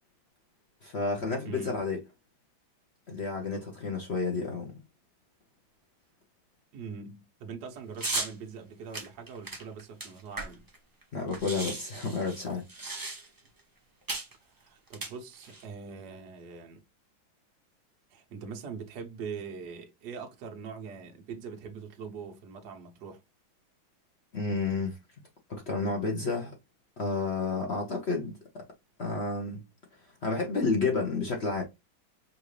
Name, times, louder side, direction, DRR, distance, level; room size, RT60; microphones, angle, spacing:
voice 1, 0.8-2.0 3.1-4.7 11.1-12.7 24.3-25.0 25.5-26.5 27.0-28.6 29.0-29.6 30.2-31.6, left 3 dB, 55° left, 0.7 m, -30 dB
voice 2, 1.4-1.8 6.7-10.7 14.5-16.8 18.1-23.2, right 5 dB, 60° right, 1.4 m, -42 dB
sound 1, 8.0-8.3 8.9-10.8 11.0-11.1 11.3-13.5 14.1-14.3 14.9-15.6, right 2 dB, 30° right, 0.4 m, -36 dB
5.4 x 2.5 x 3.2 m
omnidirectional pair, 2.2 m